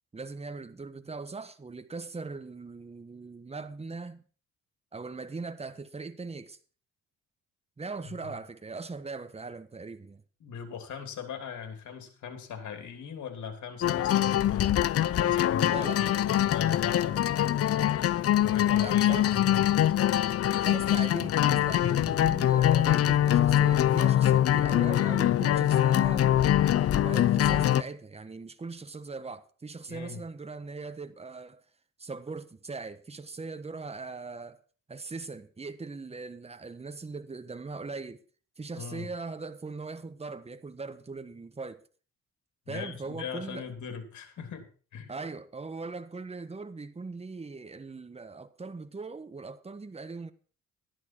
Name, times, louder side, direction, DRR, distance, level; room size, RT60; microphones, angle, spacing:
voice 1, 0.1-4.2 4.9-6.6 7.8-10.2 15.7-16.0 18.7-19.3 20.6-26.3 26.9-31.6 32.0-34.6 34.9-38.2 38.6-41.8 42.7-43.7 45.1-50.3, right 4 dB, 20° right, 1.3 m, -40 dB
voice 2, 8.1-8.4 10.4-14.8 15.1-18.0 18.4-19.6 29.9-30.2 38.8-39.1 42.7-45.1, left 7 dB, 70° left, 3.2 m, -40 dB
sound 1, 13.8-27.8, left 11 dB, 50° left, 0.6 m, -24 dB
13.0 x 11.0 x 4.6 m
cardioid pair, 90°, 30 cm